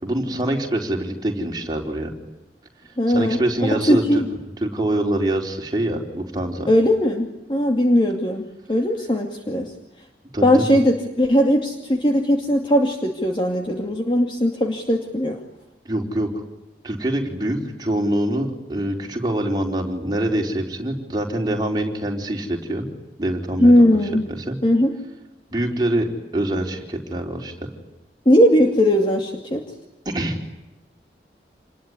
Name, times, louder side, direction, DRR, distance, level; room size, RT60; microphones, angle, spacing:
voice 1, 0.0-2.1 3.1-4.2 4.6-6.7 10.3-10.7 15.8-16.3 16.8-22.9 23.2-24.0 24.5-24.6 25.5-26.1 26.3-27.5 30.1-30.4, right 1 dB, 25° right, 1 dB, 4.3 m, -24 dB
voice 2, 3.0-4.3 6.7-8.4 8.7-9.7 10.4-15.4 23.6-24.3 24.6-25.0 28.3-29.6, equal, 30° left, 2 dB, 2.5 m, -19 dB
28.5 x 21.0 x 9.8 m, 1.0 s
head